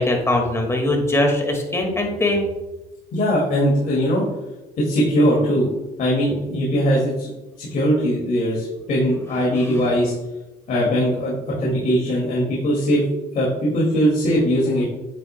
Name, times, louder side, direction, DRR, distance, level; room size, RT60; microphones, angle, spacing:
voice 1, 0.0-2.5 9.7-9.9, left 1 dB, 15° left, 2 dB, 1.9 m, -21 dB
voice 2, 3.1-4.2 4.8-5.7 6.0-7.3 7.6-10.1 10.7-13.0 13.3-14.9, equal, 55° left, -4 dB, 2.3 m, -20 dB
9.3 x 7.3 x 2.2 m, 1.0 s
cardioid pair, 110°, 17 cm